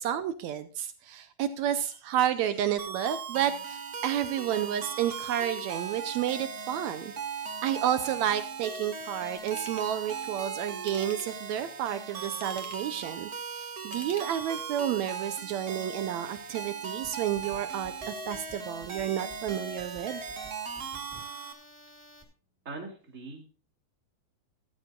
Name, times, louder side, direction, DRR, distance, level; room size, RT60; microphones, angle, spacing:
voice 1, 0.0-7.1 7.6-20.2, right 10 dB, 80° right, 11 dB, 1.7 m, -31 dB
sound 1, 2.8-21.5, right 5 dB, 50° right, 1.1 m, -38 dB
Ratchet pawl / Tools, 9.4-9.9 10.8-11.5 12.2-13.0 13.8-14.7 15.2-15.3, left 5 dB, 55° left, 2.9 m, -49 dB
sound 2, 17.0-22.2, equal, 5° left, 2.0 m, -53 dB
voice 2, 22.6-23.5, right 3 dB, 25° right, 1 dB, 2.5 m, -41 dB
14.5 x 13.5 x 2.4 m, 0.37 s
omnidirectional pair, 4.0 m